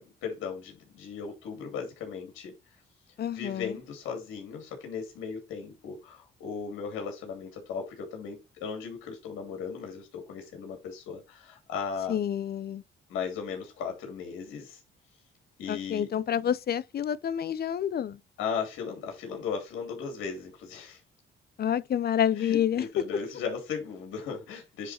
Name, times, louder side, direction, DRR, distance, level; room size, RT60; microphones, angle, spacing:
voice 1, 0.0-2.5 3.3-12.2 13.1-14.8 15.6-16.1 18.4-21.0 22.4-24.9, left 6 dB, 90° left, 3.0 m, -37 dB
voice 2, 3.2-3.8 12.1-12.8 15.7-18.2 21.6-22.9, left 9 dB, 55° left, 0.7 m, -28 dB
9.9 x 4.0 x 4.4 m
cardioid pair, 90°, 20 cm